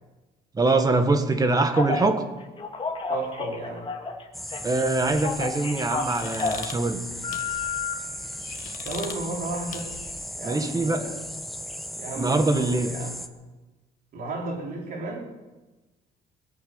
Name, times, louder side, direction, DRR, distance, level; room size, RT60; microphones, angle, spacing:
voice 1, 0.5-2.2 4.6-7.0 10.4-11.0 12.2-12.9, right 2 dB, 20° right, 8 dB, 1.6 m, -23 dB
Telephone, 1.7-2.1 2.6-4.2 4.5-6.7 7.2-7.9, left 4 dB, 30° left, 2.2 m, -30 dB
voice 2, 3.1-3.9 8.8-9.9 10.3-11.2 12.0-13.2 14.1-15.3, right 2 dB, 60° right, -1 dB, 4.4 m, -33 dB
sound 1, 4.3-13.3, equal, ahead, 1.0 m, -37 dB
sound 2, 5.0-10.3, left 7 dB, 50° left, 1.6 m, -43 dB
21.0 x 8.5 x 7.0 m, 1.1 s
cardioid pair, 110°, 17 cm